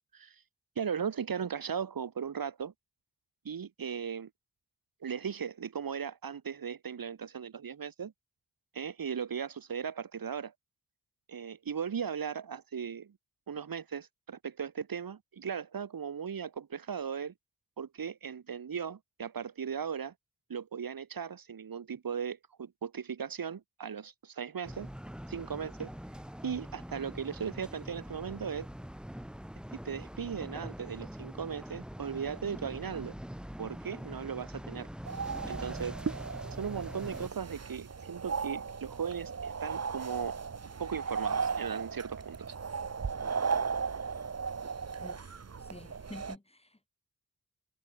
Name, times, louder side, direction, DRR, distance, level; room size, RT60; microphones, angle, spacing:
voice 1, 0.8-2.7 3.4-4.3 5.0-8.1 8.7-10.5 11.3-13.1 13.5-17.3 17.8-20.1 20.5-24.9 25.3-25.9 26.4-28.7 29.8-33.2 33.6-34.9 35.5-36.0 36.6-40.4 40.8-42.5, right 7 dB, 80° right, 3.0 m, -37 dB
sound 1, 24.6-37.3, equal, ahead, 2.1 m, -44 dB
sound 2, 35.1-46.4, right 5 dB, 45° right, 1.7 m, -36 dB
voice 2, 45.0-46.9, left 2 dB, 15° left, 3.8 m, -49 dB
wide cardioid pair, 100°, 34 cm